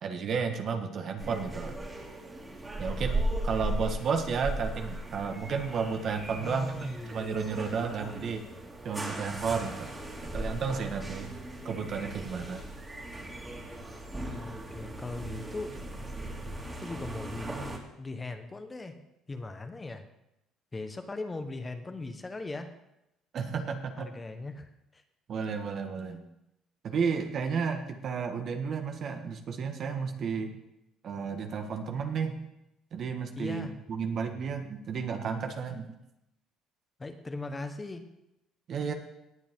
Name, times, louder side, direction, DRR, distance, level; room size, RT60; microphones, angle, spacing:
voice 1, 0.0-1.8 2.8-3.2 3.4-8.4 8.8-9.9 10.3-11.3 11.6-12.6 23.3-24.1 25.3-26.2 26.8-30.6 31.0-32.4 32.9-35.9 38.7-38.9, right 5 dB, 55° right, 5 dB, 1.5 m, -32 dB
sound 1, 1.2-17.8, right 1 dB, 20° right, 2.8 m, -37 dB
voice 2, 6.4-7.3 14.3-15.7 16.8-17.6 18.0-19.0 19.3-20.0 20.7-22.7 24.0-25.0 33.4-33.7 37.0-38.0 38.8-38.9, left 3 dB, 20° left, 7 dB, 1.2 m, -39 dB
17.5 x 8.0 x 3.7 m, 0.88 s
supercardioid pair, 80°, 0 cm